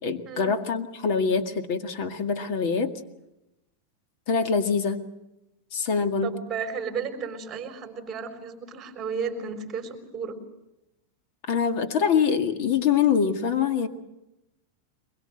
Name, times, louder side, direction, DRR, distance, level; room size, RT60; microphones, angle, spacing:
voice 1, 0.0-2.9 4.3-5.1 5.7-6.4 11.4-13.9, left 6 dB, 45° left, 8 dB, 2.0 m, -24 dB
voice 2, 6.2-10.4, right 5 dB, 15° right, 4 dB, 3.9 m, -33 dB
23.5 x 22.0 x 7.8 m, 0.91 s
supercardioid pair, 170°, 0 cm